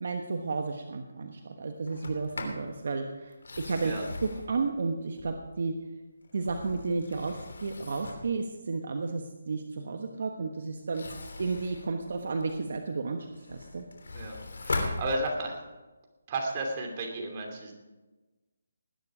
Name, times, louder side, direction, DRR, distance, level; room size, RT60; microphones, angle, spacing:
voice 1, 0.0-3.9 4.2-5.8 6.3-13.8, right 4 dB, 60° right, 5 dB, 1.2 m, -32 dB
Sliding door, 1.9-2.7 3.3-5.7 6.2-8.4 10.8-12.7 13.2-15.7, left 3 dB, 80° left, 3.0 m, -39 dB
voice 2, 14.1-15.6 16.3-17.7, right 2 dB, 30° right, 1 dB, 2.8 m, -33 dB
19.5 x 9.8 x 4.9 m, 1.2 s
hypercardioid pair, 165°, 0 cm